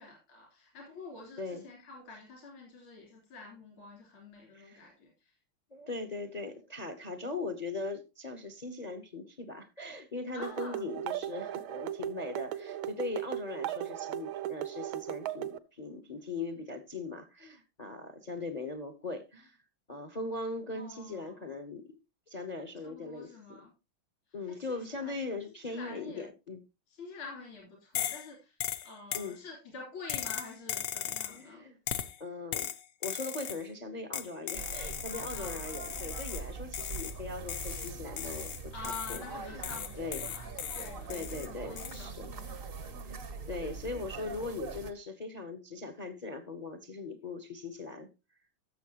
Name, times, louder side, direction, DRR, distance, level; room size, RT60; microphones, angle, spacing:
voice 1, 0.0-5.1 10.3-10.8 20.7-21.5 22.8-23.7 24.5-25.2 25.7-26.3 26.9-28.6 28.8-31.6 35.3-35.6 38.7-42.7, left 3 dB, 80° left, 4.5 m, -47 dB
voice 2, 4.5-4.9 5.7-19.6 19.9-21.9 22.3-23.6 24.3-26.6 29.1-29.4 31.3-31.8 32.2-32.7 33.0-39.6 40.0-40.3 41.1-42.3 43.0-43.2 43.5-48.1, left 3 dB, 45° left, 0.5 m, -40 dB
sound 1, 10.4-15.6, right 13 dB, 75° right, 1.4 m, -37 dB
sound 2, 27.9-28.3 28.6-29.3 30.1-31.4 31.9-32.2 32.5-33.6 34.1-36.5 36.7-37.2 37.5-39.3 39.6-41.5 41.8-42.0, left 10 dB, 65° left, 1.0 m, -37 dB
sound 3, 34.5-44.9, right 5 dB, 50° right, 0.7 m, -43 dB
16.0 x 6.8 x 2.9 m
omnidirectional pair, 2.3 m